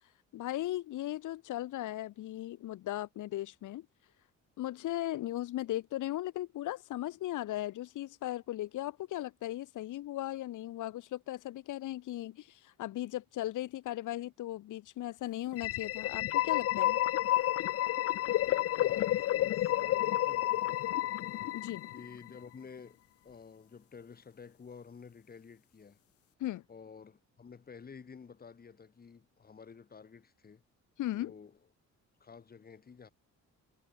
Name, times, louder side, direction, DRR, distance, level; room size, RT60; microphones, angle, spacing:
voice 1, 0.3-3.9 4.6-17.0 21.5-21.9 26.4-26.6 31.0-31.3, left 14 dB, 90° left, 1.5 m, -37 dB
sound 1, 15.5-22.3, left 14 dB, 50° left, 0.4 m, -30 dB
voice 2, 18.8-21.1 21.9-26.0 26.7-30.6 31.1-31.6 32.2-33.1, left 6 dB, 30° left, 8.0 m, -52 dB
cardioid pair, 165°, 30 cm